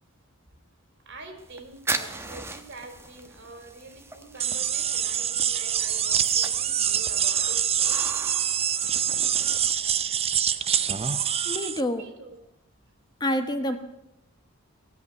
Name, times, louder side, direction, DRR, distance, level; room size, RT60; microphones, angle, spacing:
voice 1, 1.0-8.2 8.9-9.2 12.0-12.4 13.7-13.8, right 2 dB, 60° right, 7 dB, 3.0 m, -45 dB
sound 1, 1.4-10.1, right 2 dB, 10° right, 1.0 m, -39 dB
sound 2, 4.4-11.8, right 9 dB, 30° right, 0.6 m, -25 dB
voice 2, 11.4-12.0 13.2-13.8, left 1 dB, 20° left, 7 dB, 1.1 m, -27 dB
19.0 x 8.2 x 9.4 m, 0.84 s
head